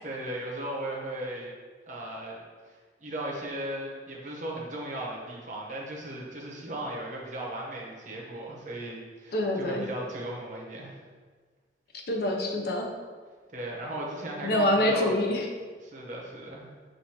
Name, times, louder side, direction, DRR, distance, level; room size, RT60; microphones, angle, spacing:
voice 1, 0.0-1.5 1.9-2.4 2.6-11.0 13.5-15.1 15.8-16.7, right 1 dB, 45° right, -3 dB, 0.9 m, -37 dB
voice 2, 9.3-9.9 12.1-12.9 14.4-15.5, left 1 dB, 60° left, 2 dB, 0.6 m, -26 dB
6.3 x 2.6 x 2.8 m, 1.5 s
head